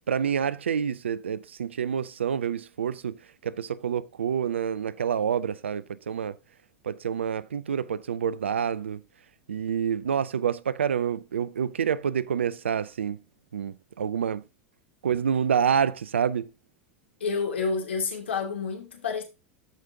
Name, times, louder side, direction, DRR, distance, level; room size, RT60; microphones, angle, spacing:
voice 1, 0.1-3.2 3.4-6.3 6.8-9.0 9.5-13.2 13.5-14.4 15.0-16.5, right 8 dB, 75° right, 0.5 m, -27 dB
voice 2, 17.2-19.2, left 5 dB, 75° left, 2.7 m, -29 dB
14.0 x 5.2 x 2.8 m
figure-of-eight pair, 85°, 6 cm